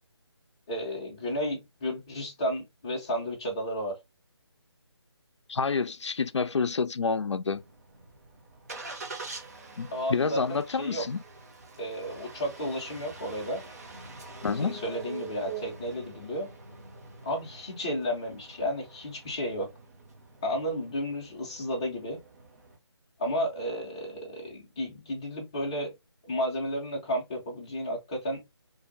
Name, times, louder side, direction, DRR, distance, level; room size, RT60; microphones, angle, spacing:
voice 1, 0.7-4.0 9.9-11.1 11.8-13.6 14.6-16.5 17.2-19.7 20.4-22.2 23.2-25.9 26.2-28.4, equal, 10° left, 0.4 m, -32 dB
voice 2, 5.5-7.6 9.8-11.2 14.4-14.8, left 5 dB, 85° left, 0.4 m, -28 dB
Engine starting, 7.5-22.8, right 4 dB, 35° right, 0.6 m, -45 dB
2.6 x 2.0 x 3.8 m
figure-of-eight pair, 155°, 14 cm